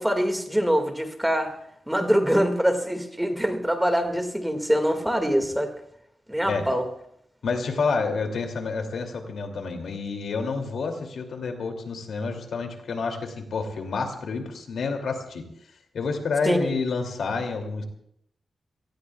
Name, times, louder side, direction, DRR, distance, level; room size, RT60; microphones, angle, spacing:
voice 1, 0.0-1.5 1.9-5.7 6.3-6.8 16.4-16.7, equal, 5° right, 5 dB, 2.0 m, -24 dB
voice 2, 7.4-15.4 15.9-17.8, left 4 dB, 90° left, 4 dB, 2.6 m, -29 dB
27.5 x 19.0 x 2.4 m, 0.73 s
wide cardioid pair, 125°, 0 cm